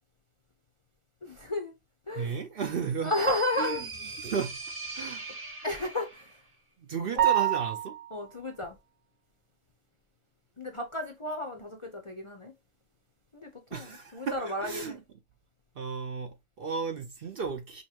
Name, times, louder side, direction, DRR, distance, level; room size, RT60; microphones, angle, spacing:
voice 1, 1.2-1.7 2.1-2.4 3.0-3.8 5.6-6.3 7.2-7.3 8.1-8.8 10.6-12.5 13.3-15.0, left 1 dB, 35° left, 0.5 m, -33 dB
voice 2, 2.2-3.1 3.6-3.9 4.2-4.6 4.9-5.3 6.8-8.0 13.7-15.0 15.8-17.8, right 5 dB, 55° right, 0.7 m, -34 dB
sound 1, 2.6-6.4, right 4 dB, 40° right, 1.2 m, -41 dB
sound 2, 7.2-8.2, right 14 dB, 80° right, 1.2 m, -26 dB
5.2 x 2.3 x 2.7 m
omnidirectional pair, 1.3 m